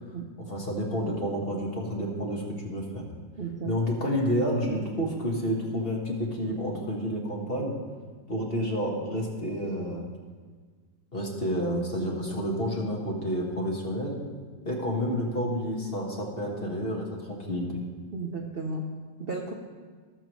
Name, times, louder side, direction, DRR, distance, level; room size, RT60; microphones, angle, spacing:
voice 1, 0.4-3.0 3.6-7.8 8.3-10.0 11.1-14.2 14.6-17.8, equal, 35° left, -1 dB, 1.5 m, -30 dB
voice 2, 3.4-3.7 18.1-18.8 19.2-19.5, right 3 dB, 50° right, 1 dB, 0.7 m, -33 dB
18.5 x 6.8 x 3.1 m, 1.5 s
omnidirectional pair, 2.0 m